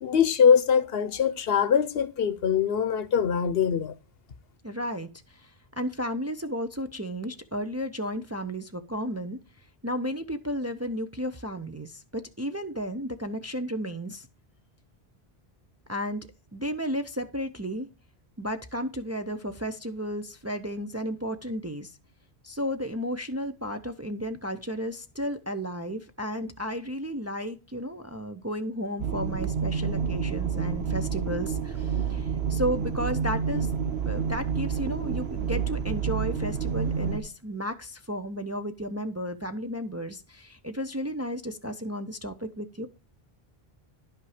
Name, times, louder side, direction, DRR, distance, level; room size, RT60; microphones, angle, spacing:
voice 1, 0.0-3.9, left 7 dB, 70° left, 1.0 m, -23 dB
voice 2, 4.6-9.4 9.8-14.3 15.9-17.9 18.4-22.0 22.4-33.7 34.1-42.9, equal, 20° right, 0.5 m, -33 dB
sound 1, 29.0-37.2, right 6 dB, 80° right, 1.3 m, -29 dB
11.0 x 5.7 x 4.9 m
omnidirectional pair, 1.0 m